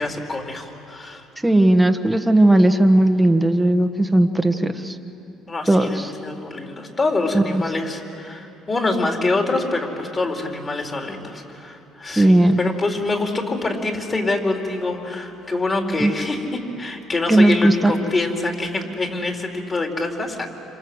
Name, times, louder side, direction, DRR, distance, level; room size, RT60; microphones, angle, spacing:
voice 1, 0.0-1.2 5.5-20.5, left 2 dB, 30° left, 2 dB, 4.3 m, -25 dB
voice 2, 1.4-5.0 5.7-6.1 7.3-7.6 12.2-12.6 16.0-16.1 17.3-17.9, right 1 dB, 5° right, 5 dB, 1.5 m, -16 dB
27.0 x 26.5 x 8.1 m, 3.0 s
supercardioid pair, 85°, 0 cm